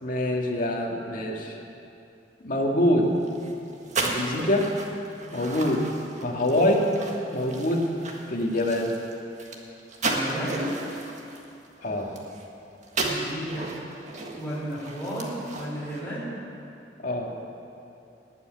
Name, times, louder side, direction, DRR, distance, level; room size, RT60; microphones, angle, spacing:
voice 1, 0.0-1.5 2.4-3.1 4.0-4.7 5.3-5.8 6.2-6.9 7.3-7.8 8.3-8.9 11.8-12.1 17.0-17.3, left 1 dB, 50° left, -1 dB, 2.0 m, -25 dB
sound 1, 3.2-12.5 12.8-16.0, right 2 dB, 45° right, 1.7 m, -34 dB
voice 2, 10.1-10.8 13.0-13.7 14.3-16.4, equal, 10° left, -8 dB, 3.9 m, -33 dB
18.5 x 6.3 x 9.5 m, 2.7 s
head